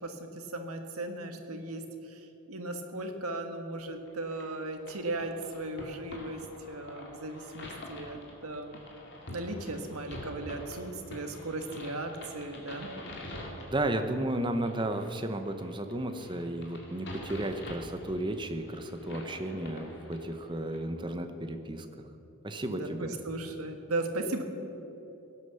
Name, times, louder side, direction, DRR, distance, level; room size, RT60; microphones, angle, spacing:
voice 1, 0.0-2.2 2.5-8.8 9.3-12.9 22.6-24.4, right 2 dB, 80° right, 5 dB, 1.5 m, -37 dB
sound 1, 4.1-20.8, left 1 dB, 50° left, 2.6 m, -46 dB
voice 2, 13.7-22.1 22.4-23.2, right 1 dB, 20° right, 7 dB, 0.8 m, -33 dB
16.5 x 9.6 x 6.8 m, 3.0 s
head